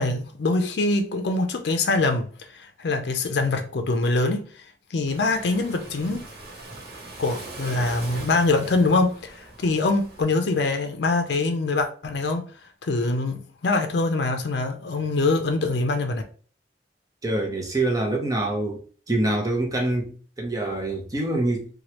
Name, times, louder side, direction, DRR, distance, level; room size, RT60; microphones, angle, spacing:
voice 1, 0.0-2.3 2.5-4.5 4.9-6.2 7.2-12.5 12.8-16.2, left 3 dB, 70° left, 0.5 m, -24 dB
Waves surf, 5.1-10.2, right 2 dB, 60° right, 1.2 m, -40 dB
voice 2, 17.2-18.8 19.1-21.7, right 2 dB, 20° right, 0.7 m, -25 dB
3.1 x 2.3 x 2.9 m
head